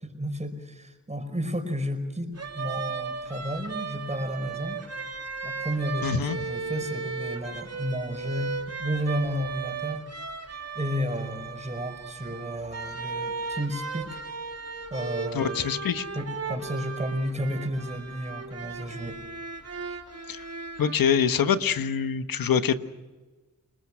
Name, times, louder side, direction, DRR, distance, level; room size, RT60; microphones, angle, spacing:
voice 1, 0.0-4.8 5.4-10.1 10.7-14.2 14.9-15.8 16.2-19.2 19.9-20.0, equal, 20° right, 7 dB, 5.5 m, -32 dB
sound 1, 2.4-20.9, right 4 dB, 50° right, 3.1 m, -36 dB
voice 2, 6.0-6.4 15.3-16.0 20.3-20.4 20.8-22.8, left 7 dB, 85° left, 10 dB, 1.3 m, -25 dB
29.5 x 20.5 x 6.2 m, 1.2 s
cardioid pair, 60°, 34 cm